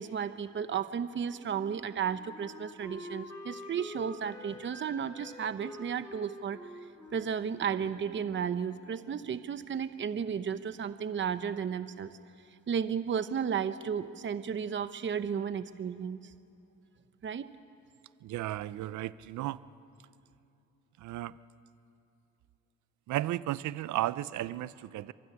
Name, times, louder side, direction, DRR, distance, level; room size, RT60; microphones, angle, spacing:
voice 1, 0.0-6.6 7.1-12.1 12.7-16.3 17.2-17.4, right 7 dB, 40° right, 11 dB, 0.9 m, -33 dB
Wind instrument woodwind instrument, 1.4-8.9, left 1 dB, 10° left, 5.6 m, -47 dB
voice 2, 18.2-19.6 21.0-21.4 23.1-25.1, right 14 dB, 75° right, 17 dB, 0.7 m, -34 dB
25.5 x 23.0 x 9.9 m, 2.7 s
cardioid pair, 90°, 29 cm